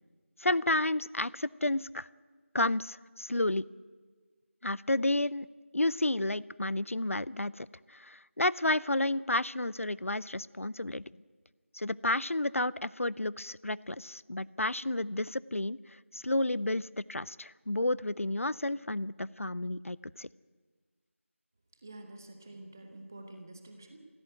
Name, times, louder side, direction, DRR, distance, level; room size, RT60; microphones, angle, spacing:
voice 1, 0.4-2.1 2.5-3.6 4.6-5.5 5.7-11.0 11.7-20.3, left 1 dB, 80° left, 21 dB, 0.6 m, -31 dB
voice 2, 21.8-24.0, right 2 dB, 15° right, 5 dB, 0.9 m, -48 dB
19.5 x 16.0 x 9.3 m, 1.5 s
figure-of-eight pair, 175°, 7 cm